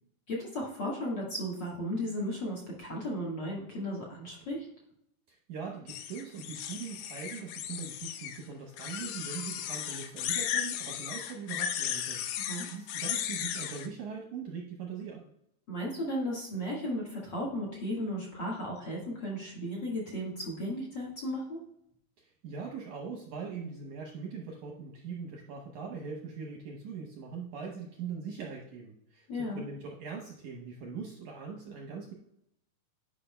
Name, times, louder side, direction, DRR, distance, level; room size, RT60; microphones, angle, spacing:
voice 1, 0.3-4.7 12.5-12.7 15.7-21.6 29.3-29.6, equal, 55° left, -3 dB, 1.2 m, -35 dB
voice 2, 5.3-15.3 22.2-32.1, right 5 dB, 75° right, 0 dB, 1.8 m, -41 dB
sound 1, 5.9-8.4 8.8-13.9, left 10 dB, 85° left, 2.7 m, -35 dB
11.0 x 5.4 x 2.2 m, 0.76 s
omnidirectional pair, 4.6 m